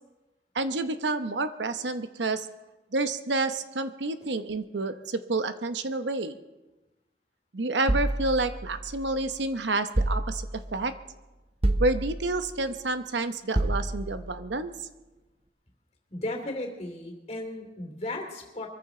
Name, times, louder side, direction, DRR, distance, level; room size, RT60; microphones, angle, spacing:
voice 1, 0.5-2.5 2.9-6.4 7.5-10.9 11.8-14.9, right 2 dB, 80° right, 9 dB, 0.9 m, -29 dB
sound 1, 7.9-9.3 10.0-10.8 11.6-12.5 13.6-14.4, right 1 dB, 35° right, 0.8 m, -29 dB
voice 2, 16.1-18.7, left 1 dB, 35° left, 3 dB, 2.7 m, -35 dB
23.5 x 14.5 x 3.9 m, 1.1 s
head